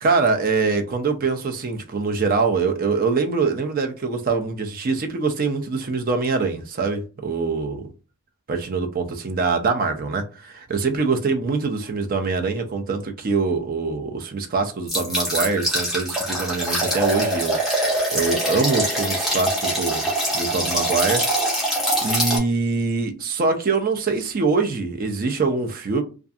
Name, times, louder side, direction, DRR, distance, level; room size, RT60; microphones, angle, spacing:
voice 1, 0.0-7.8 8.5-17.7 18.1-20.1 20.3-21.2 22.0-26.0, right 4 dB, 40° right, 0.4 m, -24 dB
sound 1, 14.9-22.4, right 1 dB, ahead, 0.7 m, -23 dB
2.6 x 2.4 x 2.3 m
head